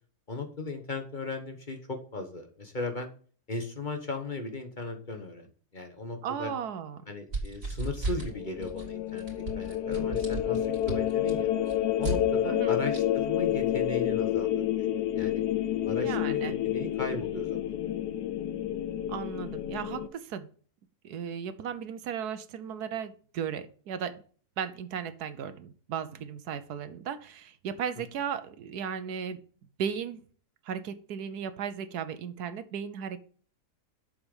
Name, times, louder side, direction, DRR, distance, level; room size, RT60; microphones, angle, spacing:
voice 1, 0.3-3.1 3.5-5.5 5.7-6.5 7.1-9.3 9.6-11.5 12.0-14.9 15.1-15.4 15.8-17.7, left 2 dB, 35° left, 5 dB, 1.3 m, -37 dB
voice 2, 6.2-7.0 12.5-12.8 16.0-16.6 19.1-20.5 21.0-24.2 24.6-29.4 29.8-30.2 30.6-33.2, right 8 dB, 80° right, 12 dB, 1.3 m, -36 dB
sound 1, 7.3-8.3 8.6-8.9 9.2-12.2 12.9-13.0, right 1 dB, 55° right, 3.3 m, -34 dB
sound 2, 8.1-20.1, left 11 dB, 85° left, 1.2 m, -29 dB
7.8 x 6.3 x 5.4 m, 0.43 s
omnidirectional pair, 1.7 m